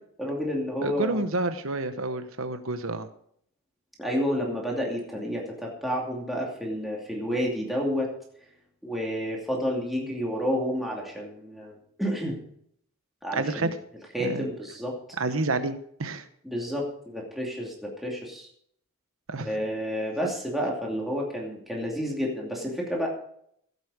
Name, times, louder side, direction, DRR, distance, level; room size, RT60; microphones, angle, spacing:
voice 1, 0.2-1.2 4.0-8.1 8.8-12.4 13.2-13.7 14.1-14.9 16.4-18.5 19.4-23.1, equal, ahead, -3 dB, 2.5 m, -30 dB
voice 2, 0.8-3.1 13.3-13.7 14.2-14.5 15.2-16.3 19.3-19.5, right 3 dB, 65° right, 10 dB, 1.1 m, -29 dB
17.0 x 8.3 x 5.0 m, 0.67 s
head